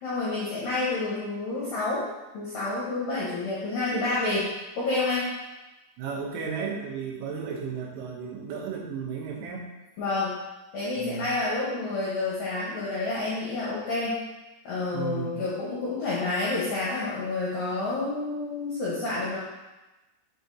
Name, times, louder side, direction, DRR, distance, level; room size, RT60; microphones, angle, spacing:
voice 1, 0.0-2.1 2.3-4.5 4.8-5.3 10.0-10.4 10.7-14.2 14.6-19.4, left 3 dB, 75° left, -8 dB, 2.0 m, -29 dB
voice 2, 6.0-9.7 11.0-11.4 14.9-15.4, right 6 dB, 85° right, -1 dB, 3.5 m, -34 dB
7.9 x 4.7 x 2.7 m, 1.1 s
omnidirectional pair, 5.6 m